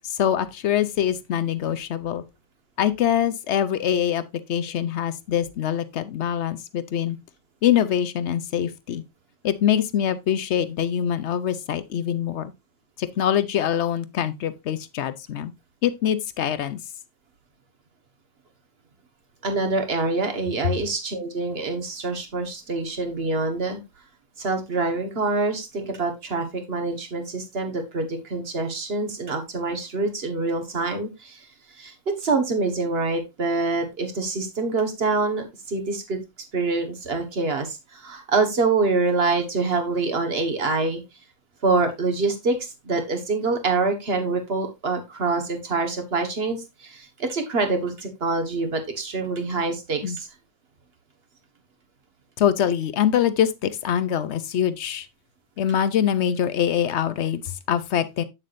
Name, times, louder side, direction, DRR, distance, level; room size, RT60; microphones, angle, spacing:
voice 1, 0.0-2.2 2.8-4.2 4.5-7.2 7.6-9.0 9.4-12.5 13.0-15.5 15.8-16.8 50.0-50.2 52.4-55.1 55.6-58.2, left 9 dB, 60° left, 0.9 m, -24 dB
voice 2, 19.4-23.8 24.4-36.2 36.5-41.0 41.6-50.3, right 3 dB, 45° right, 1.6 m, -25 dB
8.3 x 7.4 x 2.6 m
omnidirectional pair, 1.4 m